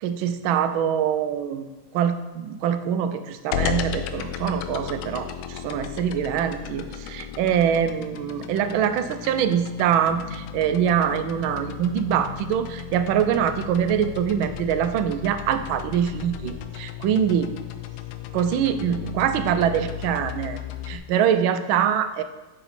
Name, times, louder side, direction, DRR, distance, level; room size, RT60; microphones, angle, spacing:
voice 1, 0.0-1.6 1.9-17.5 18.3-20.6 20.8-22.2, right 8 dB, 90° right, 10 dB, 1.4 m, -24 dB
sound 1, 3.5-21.0, left 9 dB, 85° left, 1.4 m, -35 dB
6.9 x 6.5 x 4.2 m, 1.1 s
omnidirectional pair, 2.1 m